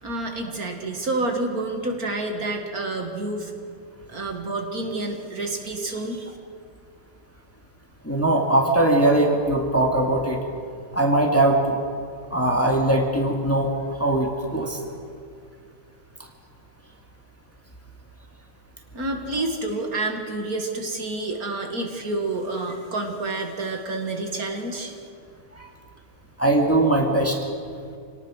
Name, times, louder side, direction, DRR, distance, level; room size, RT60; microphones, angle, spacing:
voice 1, 0.0-3.5 4.1-6.4 18.9-24.9, right 2 dB, 55° right, 3 dB, 2.3 m, -29 dB
voice 2, 8.0-10.4 10.9-11.8 12.3-13.7 14.0-14.8 25.6-25.7 26.4-27.4, right 1 dB, 10° left, 1 dB, 2.1 m, -20 dB
27.0 x 18.5 x 6.4 m, 2.3 s
omnidirectional pair, 1.9 m